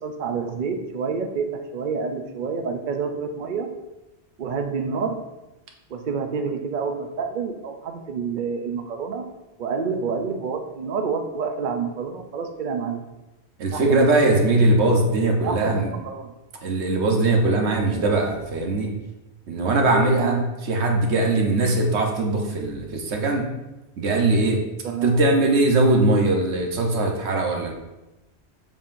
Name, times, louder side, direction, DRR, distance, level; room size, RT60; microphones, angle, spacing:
voice 1, 0.0-3.7 4.4-5.2 5.9-9.2 9.6-13.0 13.7-14.1 15.4-16.3 19.9-20.5 24.8-25.2, right 5 dB, 55° right, 5 dB, 0.7 m, -28 dB
voice 2, 13.6-15.9 16.6-18.9 19.5-23.5 24.0-24.6 25.0-27.7, right 2 dB, 90° right, 2 dB, 1.2 m, -21 dB
7.2 x 5.4 x 2.6 m, 1.0 s
omnidirectional pair, 1.1 m